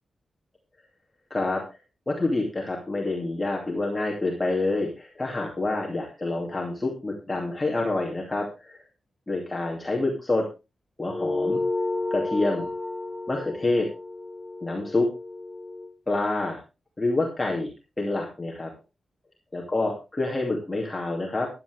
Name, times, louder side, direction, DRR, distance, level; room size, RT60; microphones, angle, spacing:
voice 1, 1.3-1.6 2.1-8.8 9.3-10.4 11.0-11.6 12.1-12.7 13.3-13.9 14.6-15.1 16.1-16.6 17.0-17.7 18.0-18.7 19.5-21.5, left 2 dB, 15° left, -2 dB, 2.6 m, -27 dB
sound 1, 11.1-15.9, left 2 dB, ahead, 1.3 m, -31 dB
14.5 x 11.5 x 3.5 m, 0.28 s
wide cardioid pair, 170°, 0 cm